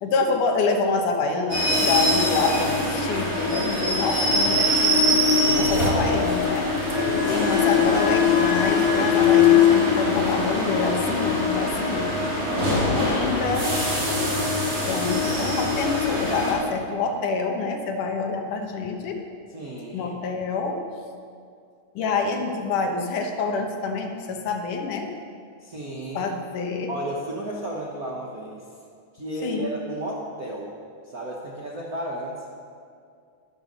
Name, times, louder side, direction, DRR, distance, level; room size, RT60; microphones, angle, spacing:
voice 1, 0.0-5.2 5.6-6.7 7.2-12.1 12.5-13.7 14.8-19.2 19.9-20.8 22.0-25.1 26.1-26.9 29.4-29.7, left 4 dB, 75° left, 3 dB, 2.6 m, -27 dB
sound 1, 1.5-16.5, left 4 dB, 55° right, 4.9 m, -22 dB
sound 2, 4.7-9.8, right 1 dB, 35° right, 1.5 m, -35 dB
voice 2, 5.2-6.7 6.9-7.7 12.3-13.1 13.8-14.4 19.5-20.2 25.6-26.3 26.9-28.6 29.1-30.7 31.1-32.4, right 1 dB, 75° right, -3 dB, 0.8 m, -33 dB
13.5 x 12.5 x 5.4 m, 2.3 s
omnidirectional pair, 3.8 m